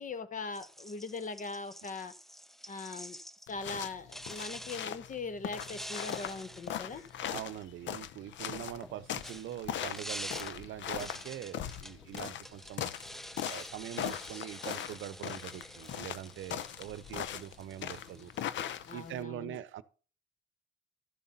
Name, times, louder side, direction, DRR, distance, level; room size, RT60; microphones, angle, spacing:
voice 1, 0.0-2.1 2.7-3.2 3.5-7.0 18.9-19.6, left 4 dB, 40° left, 1.1 m, -40 dB
sound 1, 0.5-3.5 4.1-4.9 5.5-7.6 8.7-19.1, equal, ahead, 0.4 m, -47 dB
sound 2, 3.5-19.2, left 10 dB, 70° left, 0.7 m, -40 dB
voice 2, 7.3-12.9 13.4-18.3 18.9-19.8, right 12 dB, 75° right, 0.7 m, -43 dB
12.5 x 7.2 x 4.1 m
cardioid pair, 90°, 20 cm